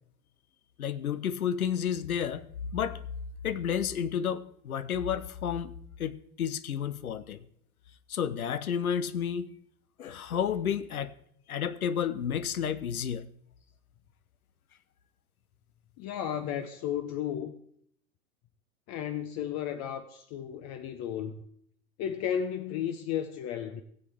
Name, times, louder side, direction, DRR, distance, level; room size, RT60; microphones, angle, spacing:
voice 1, 0.8-2.4 2.7-3.0 3.4-5.7 6.0-7.4 8.1-9.5 10.0-11.1 11.5-13.3, left 8 dB, 85° left, 0.7 m, -31 dB
voice 2, 16.0-17.5 18.9-21.4 22.0-23.8, left 9 dB, 40° left, 0.7 m, -33 dB
16.5 x 7.9 x 3.4 m
hypercardioid pair, 90°, 42 cm